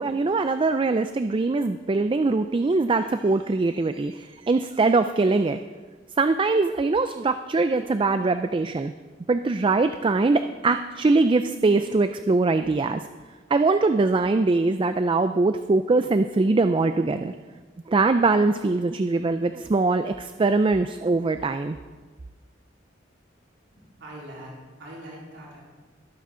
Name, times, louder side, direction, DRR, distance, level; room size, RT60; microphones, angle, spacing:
voice 1, 0.0-5.6 6.2-8.9 9.3-13.1 13.5-17.3 17.9-21.8, right 3 dB, 30° right, 9 dB, 0.4 m, -22 dB
voice 2, 23.7-24.5 24.8-25.6, right 1 dB, 85° right, -5 dB, 3.9 m, -42 dB
21.5 x 9.0 x 3.8 m, 1.4 s
head